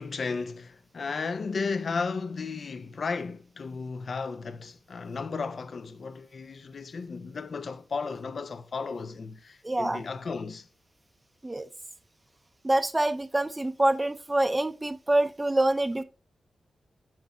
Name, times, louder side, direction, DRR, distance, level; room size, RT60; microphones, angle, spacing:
voice 1, 0.0-10.7, left 4 dB, 60° left, 0.4 m, -34 dB
voice 2, 9.6-10.0 11.4-11.7 12.6-16.0, right 1 dB, 25° right, 0.5 m, -26 dB
7.0 x 6.1 x 2.6 m
cardioid pair, 50°, 0 cm